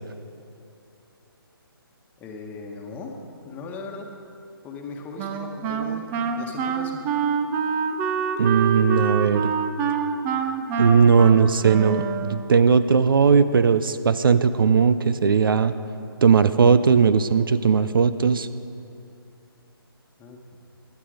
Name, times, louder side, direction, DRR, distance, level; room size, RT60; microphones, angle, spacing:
voice 1, 2.2-3.1 3.4-4.1 4.6-6.1 6.4-7.0 20.2-20.4, left 3 dB, 15° left, 2 dB, 1.4 m, -38 dB
Wind instrument woodwind instrument, 5.2-12.6, right 6 dB, 15° right, 0.6 m, -26 dB
voice 2, 8.4-9.5 10.8-15.7 16.2-18.5, right 6 dB, 60° right, 13 dB, 0.7 m, -18 dB
21.5 x 10.5 x 5.1 m, 2.6 s
figure-of-eight pair, 145°, 13 cm